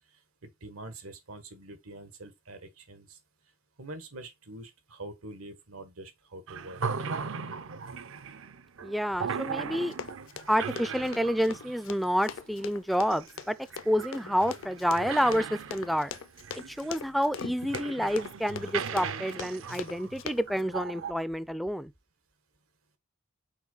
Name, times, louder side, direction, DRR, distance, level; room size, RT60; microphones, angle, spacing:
voice 1, 0.4-3.2 3.8-6.8, right 2 dB, 90° right, 1.5 m, -45 dB
sound 1, 6.5-21.1, right 6 dB, 65° right, 0.6 m, -38 dB
voice 2, 8.8-9.9 10.5-13.6 13.9-16.1 16.7-21.9, equal, ahead, 0.3 m, -29 dB
Run, 9.9-20.6, left 6 dB, 65° left, 0.5 m, -41 dB
6.0 x 4.6 x 4.0 m
head